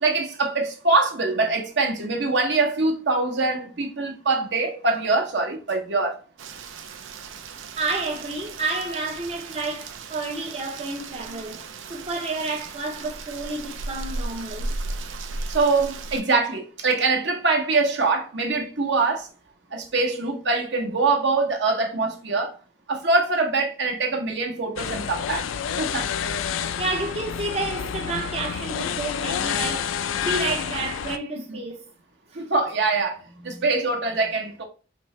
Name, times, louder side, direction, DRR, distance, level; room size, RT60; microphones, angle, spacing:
voice 1, 0.0-6.2 15.5-19.3 19.7-22.6 22.9-25.5 25.8-26.1 31.5-31.6 32.3-33.2 33.4-34.6, right 3 dB, 60° right, 0.9 m, -23 dB
Rain, 6.4-16.2, right 3 dB, 80° right, 0.5 m, -36 dB
voice 2, 7.8-14.7 26.8-31.9 32.3-32.4 33.5-33.6, right 3 dB, 30° right, 0.6 m, -30 dB
sound 1, 24.8-31.2, left 8 dB, 90° left, 0.4 m, -29 dB
4.5 x 2.8 x 3.1 m
head